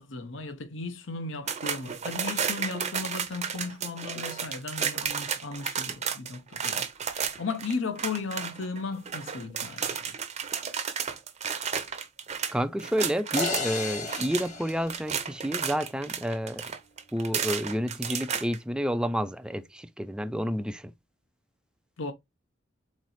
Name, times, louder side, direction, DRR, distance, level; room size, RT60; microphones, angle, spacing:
voice 1, 0.0-6.9 7.1-10.1 22.0-22.1, left 4 dB, 70° left, 0.8 m, -36 dB
sound 1, 1.5-13.7 13.9-18.6, right 7 dB, 35° right, 0.6 m, -32 dB
voice 2, 12.5-16.6 17.1-20.9, equal, 5° right, 0.3 m, -30 dB
sound 2, 13.4-15.7, left 3 dB, 40° left, 1.5 m, -34 dB
3.9 x 3.1 x 4.1 m
head